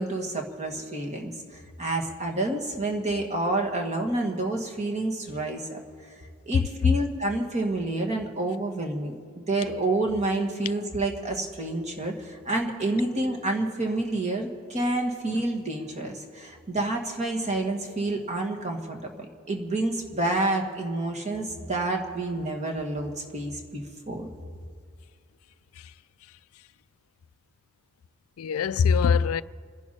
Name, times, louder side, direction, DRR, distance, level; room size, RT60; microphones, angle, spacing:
voice 1, 0.0-5.8 6.5-24.3, right 2 dB, 35° right, 1.8 m, -29 dB
voice 2, 6.5-6.9 15.3-15.4 25.8-25.9 28.4-29.4, left 6 dB, 80° left, 0.4 m, -23 dB
28.5 x 11.0 x 4.3 m
head